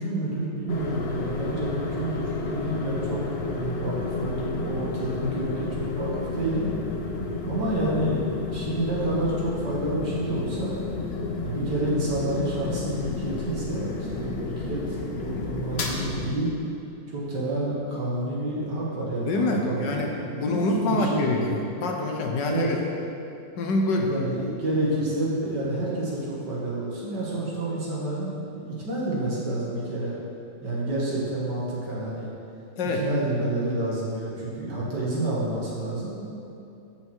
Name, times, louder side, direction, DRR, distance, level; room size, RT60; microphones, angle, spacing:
voice 1, 0.0-6.7 7.5-10.8 11.4-16.5 17.1-21.5 22.4-22.7 24.1-30.1 30.6-32.3 33.0-36.2, right 1 dB, 65° right, -6 dB, 2.6 m, -29 dB
sound 1, 0.7-16.3, left 3 dB, 50° left, 0.8 m, -31 dB
voice 2, 5.0-5.4 19.2-20.1 20.4-22.7 23.6-24.1 32.8-33.1, left 2 dB, 70° left, 1 dB, 1.6 m, -26 dB
13.5 x 5.7 x 4.6 m, 2.7 s
omnidirectional pair, 2.0 m